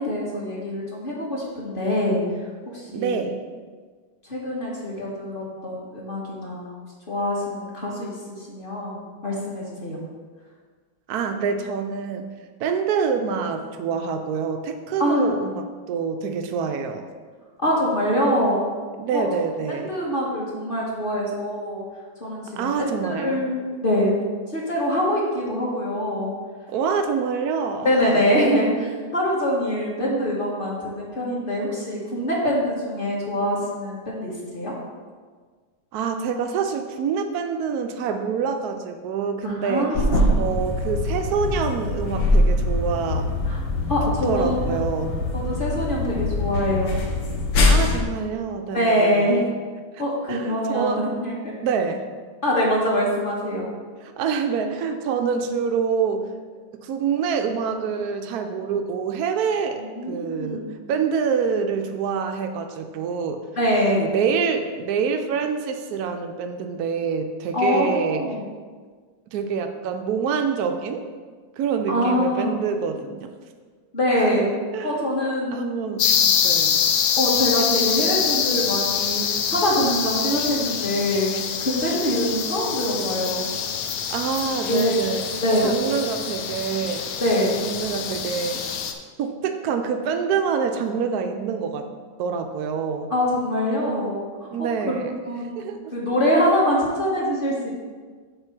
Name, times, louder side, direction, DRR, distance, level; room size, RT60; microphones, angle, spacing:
voice 1, 0.0-2.2 2.7-3.3 4.2-6.7 7.1-10.0 15.0-15.3 17.6-18.6 19.1-19.2 19.7-21.8 22.2-24.1 24.5-26.3 27.8-34.7 39.4-40.3 43.5-43.6 43.9-44.6 45.3-47.0 48.7-49.5 50.0-51.5 52.4-53.7 59.8-60.7 63.6-64.0 67.5-68.5 71.9-72.6 73.9-74.5 74.8-75.6 77.2-79.2 79.5-83.5 84.7-85.0 85.4-85.7 87.2-87.5 93.1-94.9 95.3-95.6 95.9-97.7, equal, 30° left, -4 dB, 1.3 m, -24 dB
voice 2, 2.9-3.3 11.1-12.3 12.6-17.0 19.0-19.9 22.6-23.4 26.7-28.2 35.9-39.9 40.3-43.3 44.2-45.1 47.7-49.5 50.3-51.0 51.6-52.1 54.0-56.3 56.7-60.6 60.9-63.4 64.0-68.2 69.3-71.0 71.6-73.3 74.2-75.2 75.5-76.8 84.1-85.2 85.6-87.0 87.6-88.6 89.2-91.9 92.2-93.1 94.5-95.2 95.6-95.9, right 6 dB, 85° right, 6 dB, 0.8 m, -26 dB
sound 1, 39.9-48.0, left 2 dB, 65° left, 1.5 m, -23 dB
sound 2, 76.0-88.9, left 7 dB, 80° left, 0.8 m, -25 dB
8.0 x 3.5 x 5.9 m, 1.5 s
omnidirectional pair, 2.2 m